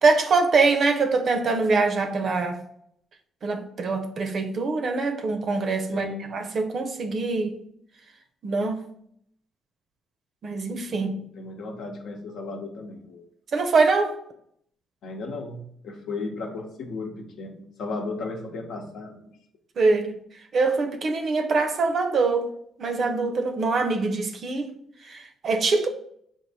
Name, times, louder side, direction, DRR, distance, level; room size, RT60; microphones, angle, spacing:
voice 1, 0.0-2.6 3.4-7.6 8.4-8.8 10.4-11.1 13.5-14.1 19.8-20.2 20.5-22.5 22.8-24.7 25.0-25.9, right 3 dB, 55° right, 0.6 m, -23 dB
voice 2, 5.9-6.4 11.0-13.2 15.0-19.4, left 3 dB, 70° left, 0.8 m, -35 dB
4.5 x 2.5 x 3.9 m
cardioid pair, 90°, 0 cm